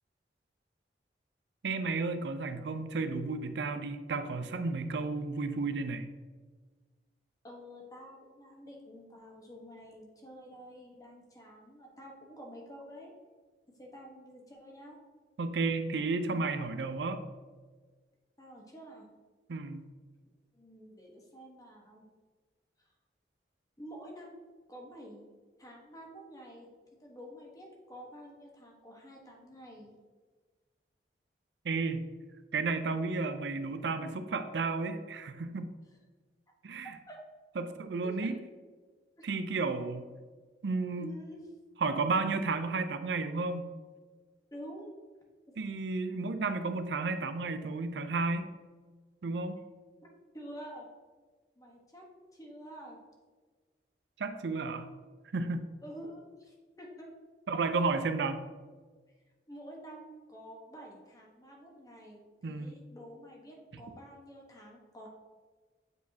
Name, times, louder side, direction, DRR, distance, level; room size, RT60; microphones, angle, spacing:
voice 1, 1.6-6.1 15.4-17.2 19.5-19.9 31.6-32.0 32.5-35.7 36.6-36.9 37.6-38.3 39.2-40.1 40.6-41.1 41.8-43.7 45.6-48.5 49.2-49.6 54.2-54.9 55.3-55.6 57.5-58.4 62.4-62.8, right 3 dB, 85° right, 9 dB, 0.5 m, -32 dB
voice 2, 7.4-13.1 13.8-15.0 18.4-19.1 20.5-22.0 22.8-22.9 23.8-24.4 24.7-25.2 25.6-26.7 27.0-29.9 37.1-37.2 38.0-38.4 39.2-39.3 41.0-41.4 44.5-44.9 50.3-50.9 51.6-52.1 52.3-53.0 55.8-57.1 59.5-62.2 62.5-65.1, equal, 20° left, -1 dB, 1.1 m, -49 dB
8.1 x 4.7 x 2.8 m, 1.4 s
head